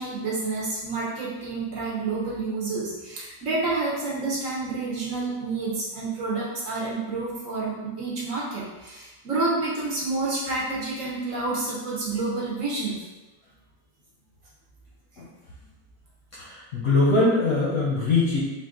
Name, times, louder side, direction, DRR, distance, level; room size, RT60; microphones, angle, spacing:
voice 1, 0.0-13.0, right 3 dB, 55° right, -6 dB, 1.2 m, -29 dB
voice 2, 16.4-18.4, left 3 dB, 60° left, -6 dB, 0.9 m, -22 dB
3.8 x 2.4 x 3.7 m, 1.1 s
omnidirectional pair, 1.9 m